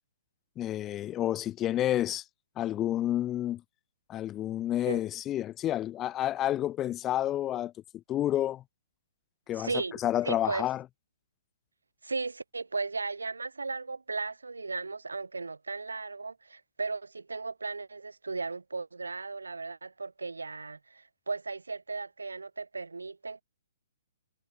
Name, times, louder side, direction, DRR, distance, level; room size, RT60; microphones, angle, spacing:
voice 1, 0.6-2.2 2.6-3.6 4.1-7.7 8.1-8.6 9.5-9.7 10.0-10.8, left 12 dB, 20° left, 4.8 m, -29 dB
voice 2, 9.5-10.7 12.0-23.4, right 3 dB, 75° right, 5.1 m, -36 dB
figure-of-eight pair, 120°, 0 cm